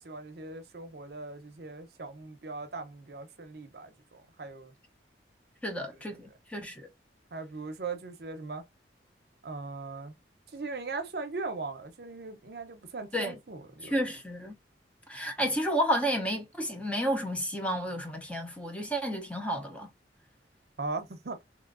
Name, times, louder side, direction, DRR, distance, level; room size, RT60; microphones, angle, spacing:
voice 1, 0.0-4.7 6.1-6.2 7.3-8.6 9.4-10.1 10.5-14.0 20.8-21.4, right 3 dB, 60° right, 0.7 m, -39 dB
voice 2, 5.6-6.8 13.1-13.4 13.8-14.5 15.1-19.9, equal, 5° left, 0.6 m, -31 dB
3.1 x 3.0 x 2.5 m
head